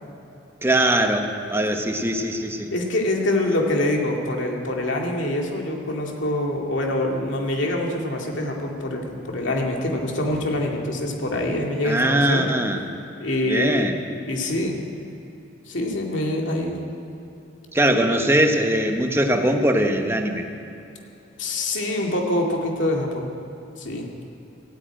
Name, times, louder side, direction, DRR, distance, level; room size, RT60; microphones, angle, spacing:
voice 1, 0.6-2.7 11.8-12.8 13.4-14.0 17.7-20.5, right 1 dB, 15° right, 4 dB, 1.1 m, -21 dB
voice 2, 2.7-12.5 13.2-13.9 14.3-14.8 15.7-16.8 17.9-18.0 21.4-23.3 23.8-24.1, left 1 dB, 70° left, 0 dB, 2.3 m, -25 dB
15.5 x 9.4 x 9.0 m, 2.8 s
head